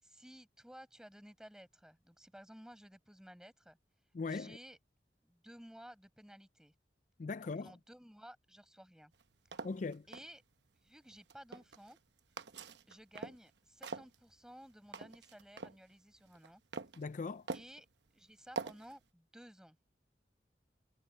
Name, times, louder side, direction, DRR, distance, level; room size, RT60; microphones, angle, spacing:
voice 1, 0.0-3.8 4.3-4.8 5.2-6.7 7.6-9.1 9.6-9.7 10.1-10.4 10.8-12.0 12.9-16.6 17.5-17.9 18.1-19.8, equal, 5° right, 7.0 m, -55 dB
voice 2, 4.1-4.6 7.2-7.7 9.6-10.1 17.0-17.5, left 4 dB, 45° left, 0.4 m, -39 dB
sound 1, 9.1-10.3 11.1-12.0 12.4-13.5 13.8-15.8 16.3-17.0 17.5-17.8 18.6-19.0, right 4 dB, 80° right, 1.0 m, -44 dB
head